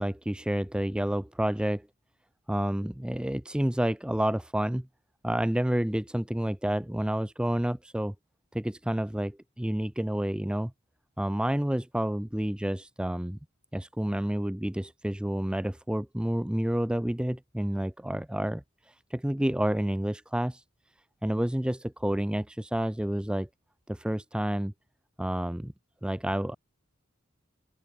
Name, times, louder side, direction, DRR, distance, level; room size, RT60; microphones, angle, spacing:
voice 1, 0.0-1.9 2.5-4.9 5.2-8.1 8.5-10.7 11.2-13.4 13.7-20.6 21.2-23.5 23.9-24.7 25.2-25.7 26.0-26.6, equal, 5° right, 0.5 m, -29 dB
open air
head